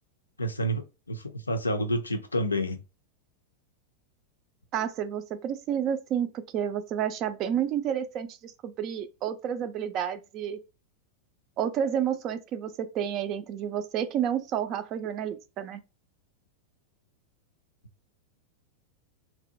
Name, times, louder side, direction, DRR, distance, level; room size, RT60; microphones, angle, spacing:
voice 1, 0.4-2.8, equal, 80° left, 0.4 m, -29 dB
voice 2, 4.7-10.6 11.6-15.8, right 9 dB, 35° right, 0.3 m, -30 dB
2.6 x 2.1 x 2.5 m
figure-of-eight pair, 90°, 0 cm